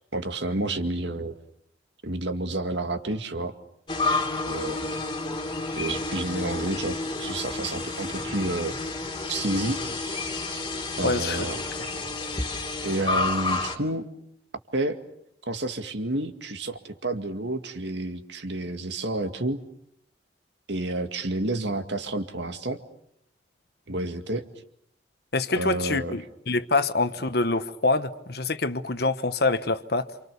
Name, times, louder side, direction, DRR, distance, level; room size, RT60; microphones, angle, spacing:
voice 1, 0.0-1.4 2.0-3.5 4.5-5.0 5.7-8.8 9.3-9.8 11.0-11.6 12.8-14.1 14.7-15.0 15.5-19.6 20.7-22.8 23.9-24.5 25.6-26.2, right 2 dB, 65° right, 2.1 m, -30 dB
sound 1, 3.9-13.7, left 3 dB, 25° left, 2.8 m, -30 dB
voice 2, 11.0-11.4 25.3-30.1, left 3 dB, 55° left, 1.3 m, -25 dB
28.5 x 27.5 x 6.9 m
head